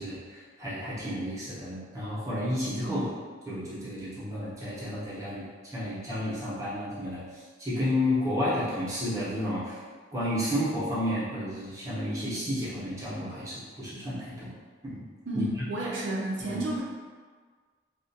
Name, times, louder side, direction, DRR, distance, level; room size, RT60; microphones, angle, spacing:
voice 1, 0.0-3.1 3.5-9.8 10.1-14.5 14.8-15.0 15.3-15.4 16.4-16.6, left 1 dB, 15° right, -11 dB, 0.7 m, -32 dB
voice 2, 15.3-16.8, right 1 dB, 75° right, -4 dB, 0.4 m, -31 dB
2.4 x 2.1 x 2.6 m, 1.5 s
head